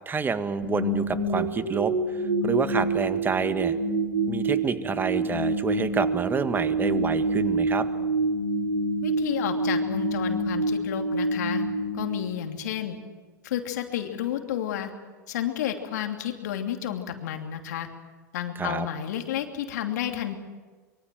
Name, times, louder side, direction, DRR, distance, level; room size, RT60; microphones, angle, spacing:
voice 1, 0.0-3.7 4.3-7.9 18.6-18.9, right 5 dB, 20° right, 11 dB, 1.7 m, -28 dB
sound 1, 0.6-12.8, right 2 dB, 85° right, 3.4 m, -27 dB
voice 2, 9.0-11.6 11.9-13.0 13.4-14.9 15.3-17.9 18.3-20.4, left 10 dB, 70° left, 5 dB, 2.8 m, -31 dB
25.0 x 23.5 x 7.8 m, 1.4 s
hypercardioid pair, 90°, 9 cm